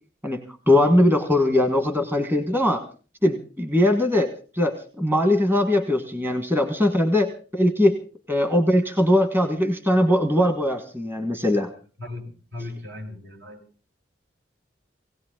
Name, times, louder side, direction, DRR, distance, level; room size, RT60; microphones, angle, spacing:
voice 1, 0.2-2.8 3.2-8.0 8.3-11.7, left 1 dB, 15° right, 7 dB, 1.5 m, -21 dB
voice 2, 12.5-13.6, left 2 dB, 65° right, 2 dB, 5.4 m, -36 dB
19.0 x 17.5 x 3.8 m, 0.37 s
head